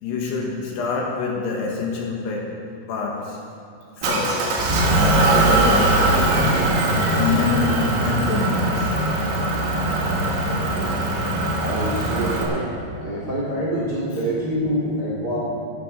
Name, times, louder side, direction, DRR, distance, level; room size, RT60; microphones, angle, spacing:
voice 1, 0.0-2.6 2.9-3.5 4.0-4.6 5.2-6.0 7.1-9.0 14.1-14.2, left 5 dB, 70° left, 0 dB, 3.1 m, -26 dB
Motor vehicle (road) / Engine, 4.0-12.4, right 1 dB, 65° right, 3.9 m, -20 dB
voice 2, 10.4-11.0 11.6-15.4, equal, 30° right, -4 dB, 2.0 m, -26 dB
16.5 x 12.0 x 5.2 m, 2.6 s
omnidirectional pair, 5.5 m